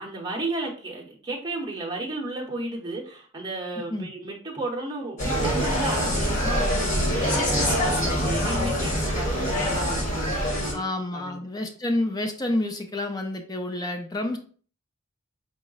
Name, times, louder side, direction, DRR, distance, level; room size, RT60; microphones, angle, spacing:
voice 1, 0.0-10.8 11.1-11.4, right 2 dB, 20° right, -2 dB, 0.8 m, -33 dB
Insect, 5.2-10.7, equal, 40° left, 1.5 m, -24 dB
voice 2, 10.7-14.4, left 1 dB, 20° left, 4 dB, 0.4 m, -29 dB
4.7 x 2.1 x 3.8 m, 0.43 s
head